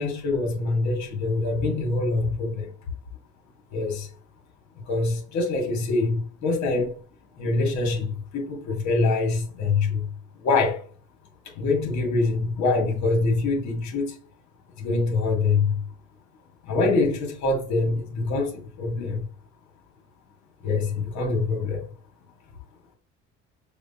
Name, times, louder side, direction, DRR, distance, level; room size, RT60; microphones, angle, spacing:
voice 1, 0.0-2.7 3.7-4.1 4.9-6.9 7.4-8.1 8.3-10.1 10.4-10.8 11.6-14.1 14.8-15.7 16.7-19.3 20.6-21.8, left 3 dB, 70° left, 1.6 m, -24 dB
6.5 x 2.3 x 2.8 m
cardioid pair, 115°, 30 cm